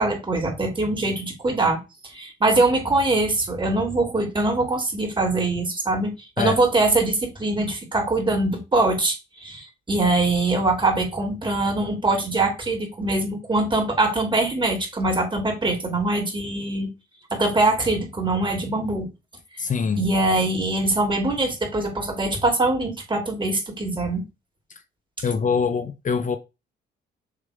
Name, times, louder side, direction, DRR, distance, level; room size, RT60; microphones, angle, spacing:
voice 1, 0.0-16.9 17.3-19.1 20.0-24.2, right 2 dB, 25° right, 2.9 m, -23 dB
voice 2, 19.6-20.0 24.7-24.8 25.2-26.4, left 5 dB, 40° left, 0.7 m, -24 dB
6.6 x 3.7 x 4.9 m
cardioid pair, 90°, 20 cm